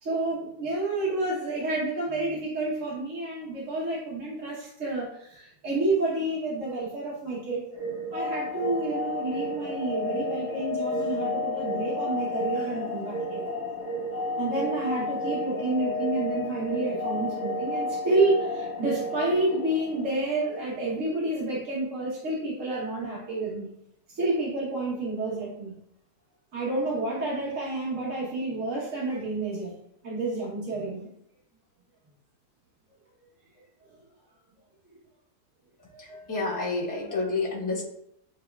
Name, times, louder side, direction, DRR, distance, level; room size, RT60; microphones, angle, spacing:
voice 1, 0.0-7.7 8.1-13.5 14.4-23.7 24.1-25.7 26.5-29.7 30.0-31.1, right 2 dB, 55° right, -6 dB, 1.2 m, -29 dB
sound 1, 7.7-20.5, left 1 dB, 30° left, 1.5 m, -31 dB
voice 2, 35.8-37.8, left 3 dB, 15° left, -5 dB, 0.8 m, -30 dB
7.4 x 3.1 x 2.2 m, 0.76 s
omnidirectional pair, 1.7 m